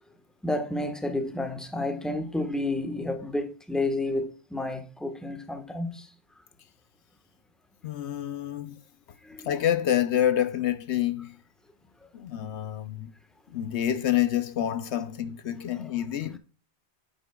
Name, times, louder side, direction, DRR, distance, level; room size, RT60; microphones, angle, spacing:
voice 1, 0.4-6.1 9.2-9.5 15.7-15.9, left 2 dB, ahead, 1.2 m, -31 dB
voice 2, 7.8-8.8 9.4-11.4 12.1-13.1 13.5-16.4, left 11 dB, 75° left, 1.0 m, -27 dB
11.0 x 8.8 x 2.3 m
omnidirectional pair, 1.2 m